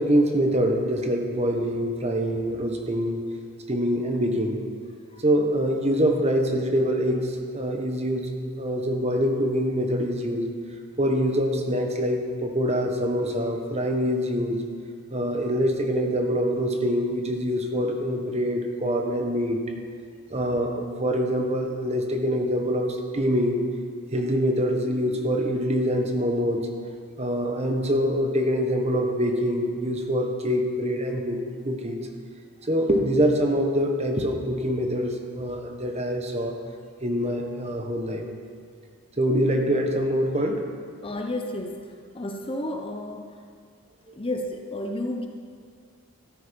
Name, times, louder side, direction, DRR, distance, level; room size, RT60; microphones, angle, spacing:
voice 1, 0.0-3.2 3.7-4.6 5.2-8.3 8.6-10.5 11.0-14.6 15.1-19.6 20.3-23.6 24.1-26.7 27.2-31.4 31.6-32.0 32.7-36.5 37.0-38.3 39.2-40.6, equal, 30° right, 3 dB, 1.3 m, -25 dB
voice 2, 41.0-43.4 44.1-45.3, left 1 dB, 25° left, 4 dB, 0.8 m, -32 dB
14.0 x 13.0 x 5.3 m, 2.1 s
head